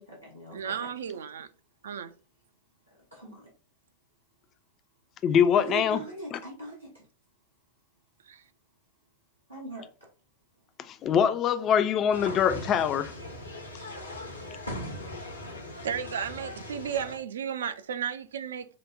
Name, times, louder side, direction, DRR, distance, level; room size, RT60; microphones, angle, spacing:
voice 1, 0.0-0.9 2.9-3.5 5.5-7.0 9.5-9.9 15.5-15.6, right 2 dB, 90° right, 0.8 m, -41 dB
voice 2, 0.5-1.5 1.8-2.1 15.8-18.7, right 8 dB, 65° right, 0.3 m, -33 dB
voice 3, 5.2-6.0 6.3-6.4 10.8-13.1, left 8 dB, 30° left, 0.3 m, -24 dB
sound 1, 12.1-17.2, left 1 dB, 80° left, 0.7 m, -39 dB
4.9 x 2.0 x 2.3 m
figure-of-eight pair, 90°, 0 cm